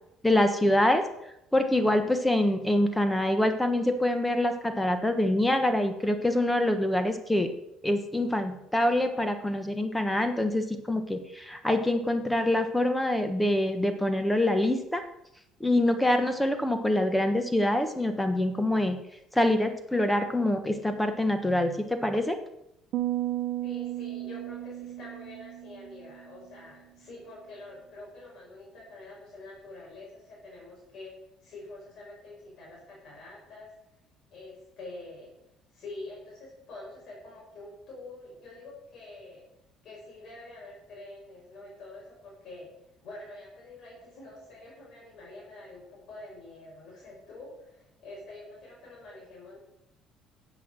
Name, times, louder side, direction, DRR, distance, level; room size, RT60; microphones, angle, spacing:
voice 1, 0.2-1.0 1.5-7.5 7.8-15.0 15.6-19.0 19.3-22.4, left 1 dB, 10° left, 8 dB, 1.3 m, -25 dB
sound 1, 22.9-26.3, right 15 dB, 70° right, 0.7 m, -34 dB
voice 2, 23.6-31.1 31.4-33.7 34.3-35.3 35.7-39.5 39.8-42.7 43.0-49.6, left 2 dB, 60° left, -4 dB, 5.4 m, -46 dB
12.0 x 7.9 x 6.2 m, 0.84 s
supercardioid pair, 85°, 0 cm